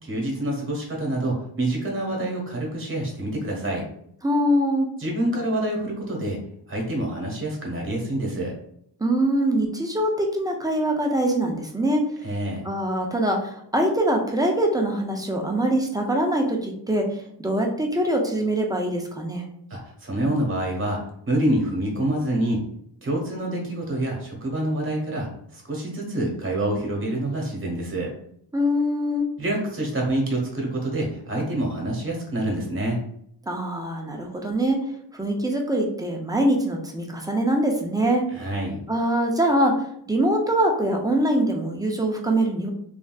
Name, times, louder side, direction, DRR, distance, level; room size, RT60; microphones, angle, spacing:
voice 1, 0.0-3.8 5.0-6.4 6.7-8.5 12.2-12.7 19.7-21.0 21.3-22.6 23.0-28.1 29.4-33.0 38.3-38.8, right 1 dB, 30° right, -2 dB, 1.1 m, -27 dB
voice 2, 4.2-4.9 9.0-12.1 12.6-19.5 28.5-29.3 33.5-34.8 35.1-38.2 38.9-42.7, right 1 dB, 10° right, 1 dB, 0.4 m, -23 dB
3.3 x 2.6 x 2.3 m, 0.69 s
wide cardioid pair, 130°, 43 cm